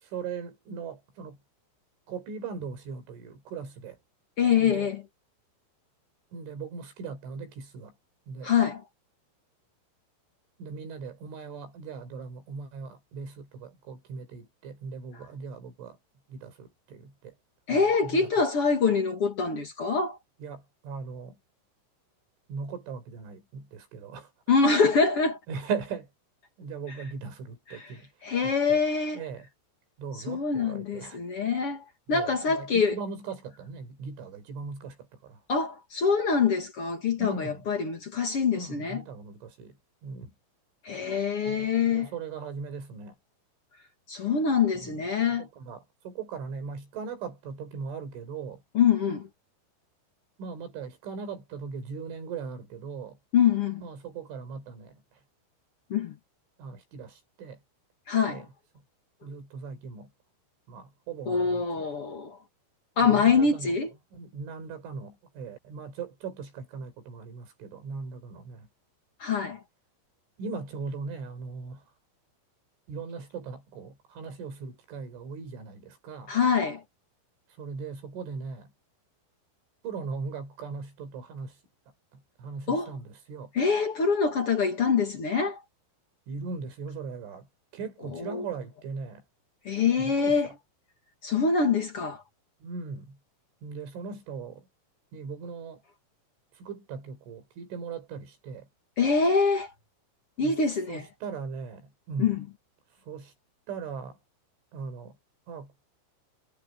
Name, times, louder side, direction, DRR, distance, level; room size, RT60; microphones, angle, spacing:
voice 1, 0.0-1.4 2.1-4.0 4.6-4.9 6.3-7.9 8.3-8.5 10.6-16.0 16.3-17.3 17.7-18.4 20.4-21.4 22.5-24.3 25.5-26.1 26.6-28.1 28.4-28.8 29.1-29.5 30.0-31.2 32.1-35.4 37.2-37.7 38.5-39.8 40.0-40.3 41.5-43.1 44.8-48.6 50.4-53.2 53.8-55.0 56.6-57.6 58.3-58.5 59.2-60.1 60.7-61.8 63.0-63.7 64.1-68.7 70.4-71.8 72.9-76.4 77.6-78.7 79.8-81.6 82.1-83.5 86.3-87.5 87.7-89.2 90.0-90.5 92.6-93.2 93.6-94.7 95.1-95.8 96.6-98.7 100.4-100.6 100.9-102.4 103.1-103.3 103.7-104.2 104.7-105.2 105.5-105.7, right 5 dB, 65° right, 8.1 m, -39 dB
voice 2, 4.4-5.0 8.4-8.8 17.7-20.2 24.5-25.4 27.7-27.9 28.2-29.2 30.3-33.0 35.5-39.0 40.8-42.1 44.1-45.5 48.7-49.3 53.3-53.8 55.9-56.1 58.1-58.4 61.2-62.4 63.0-63.9 69.2-69.6 76.3-76.8 82.7-82.9 83.5-85.6 88.1-88.4 89.6-90.5 91.2-92.2 99.0-99.7 100.4-101.1 102.2-102.4, left 5 dB, 55° left, 1.5 m, -25 dB
omnidirectional pair, 5.9 m